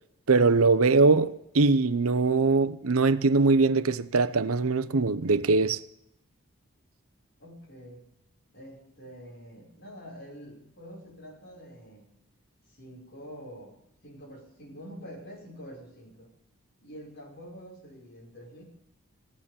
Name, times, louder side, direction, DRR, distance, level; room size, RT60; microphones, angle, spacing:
voice 1, 0.3-5.8, right 3 dB, 80° right, 0.8 m, -22 dB
voice 2, 7.4-8.1 8.5-12.1 12.7-13.8 14.0-16.3 16.8-18.6, equal, 50° left, 5.4 m, -46 dB
16.5 x 11.0 x 7.1 m
head